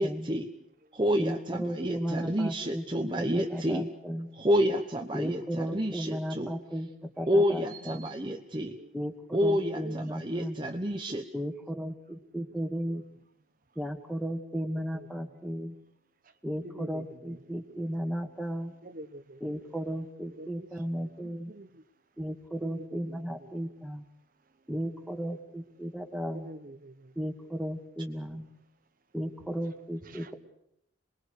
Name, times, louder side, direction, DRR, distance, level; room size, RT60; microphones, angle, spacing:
voice 1, 0.0-0.5 0.9-3.8 4.4-6.5 7.3-8.7 9.3-11.2, equal, 25° right, 4 dB, 1.1 m, -29 dB
voice 2, 0.6-0.9 2.6-2.7 3.3-3.6 7.7-8.2 8.6-8.9 9.4-10.0 11.1-11.2 12.6-12.7 14.5-15.1 16.2-16.3 16.6-17.4 18.8-19.8 20.4-20.7 21.2-21.8 22.6-23.6 26.3-27.3 30.0-30.3, right 1 dB, 45° right, 9 dB, 0.9 m, -48 dB
voice 3, 1.2-4.3 5.1-8.1 8.9-10.6 11.3-13.0 13.8-15.8 16.4-18.7 19.4-21.5 22.2-24.1 24.7-26.5 27.2-28.5 29.1-30.3, equal, ahead, 4 dB, 1.9 m, -35 dB
27.5 x 21.0 x 6.7 m, 0.78 s
head